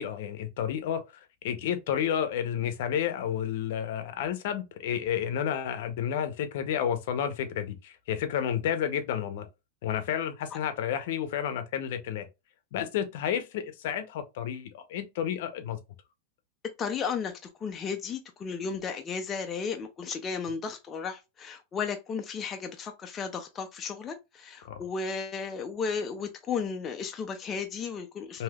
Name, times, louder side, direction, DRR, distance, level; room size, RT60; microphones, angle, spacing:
voice 1, 0.0-9.5 9.8-12.3 12.7-15.8 24.6-24.8 28.3-28.4, left 9 dB, 65° left, 0.6 m, -31 dB
voice 2, 16.8-17.3 17.6-28.4, left 5 dB, 20° left, 0.4 m, -34 dB
3.4 x 2.7 x 2.3 m
supercardioid pair, 155°, 0 cm